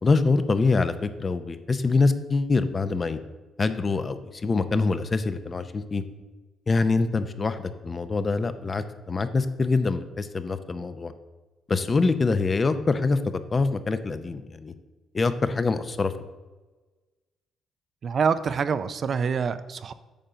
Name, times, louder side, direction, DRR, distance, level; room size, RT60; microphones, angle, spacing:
voice 1, 0.0-3.2 3.6-6.0 6.7-11.1 11.7-13.2 13.5-14.7 15.1-16.1, left 3 dB, 35° left, 11 dB, 0.6 m, -24 dB
voice 2, 18.0-19.9, right 6 dB, 50° right, 13 dB, 0.4 m, -26 dB
8.8 x 3.8 x 6.8 m, 1.2 s
cardioid pair, 90°, 0 cm